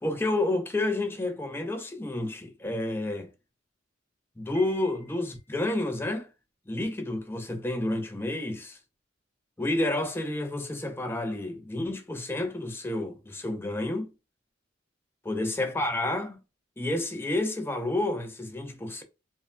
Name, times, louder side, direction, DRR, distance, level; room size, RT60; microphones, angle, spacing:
voice 1, 0.0-3.3 4.4-6.3 6.7-8.8 9.6-14.1 15.2-16.4 16.8-19.0, left 2 dB, 10° left, 0.4 m, -30 dB
Piano, 4.5-5.8, equal, 80° right, 1.0 m, -52 dB
3.1 x 2.2 x 2.2 m
head